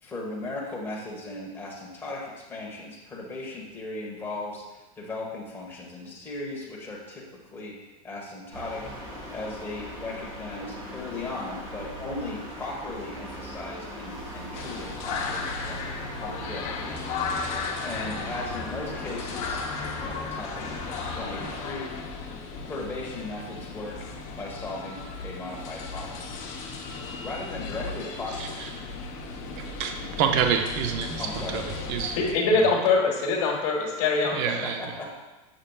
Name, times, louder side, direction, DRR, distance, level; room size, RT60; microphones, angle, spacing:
voice 1, 0.0-15.8 16.2-16.7 17.8-19.6 20.0-20.7 21.1-21.9 22.6-24.1 24.4-26.2 27.2-28.5 31.2-31.7 34.5-35.1, left 2 dB, 10° left, -3 dB, 1.2 m, -37 dB
sound 1, 8.5-21.7, right 1 dB, 20° right, 1.3 m, -40 dB
sound 2, 14.5-32.3, left 4 dB, 40° left, 0.9 m, -35 dB
voice 2, 28.4-28.7 29.5-32.2 32.5-32.7 34.2-34.8, right 7 dB, 50° right, 5 dB, 0.6 m, -28 dB
voice 3, 32.2-34.5, left 4 dB, 60° left, -6 dB, 1.5 m, -23 dB
7.4 x 6.6 x 2.4 m, 1.1 s
supercardioid pair, 160°, 19 cm